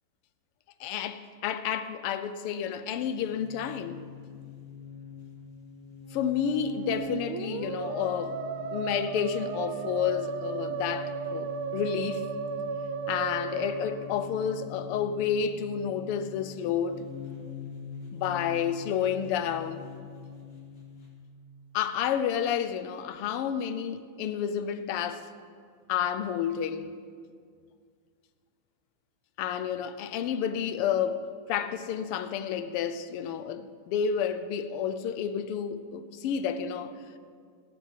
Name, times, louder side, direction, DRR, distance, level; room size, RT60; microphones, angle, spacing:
voice 1, 0.8-4.0 6.1-8.4 8.7-12.2 13.1-17.1 18.1-19.9 21.7-25.3 25.9-26.9 29.4-36.9, left 8 dB, 90° left, 1.7 m, -30 dB
sound 1, 2.9-21.2, left 7 dB, 60° left, 3.0 m, -44 dB
Musical instrument, 6.1-14.8, right 6 dB, 75° right, 1.6 m, -35 dB
17.5 x 7.0 x 7.5 m
omnidirectional pair, 2.4 m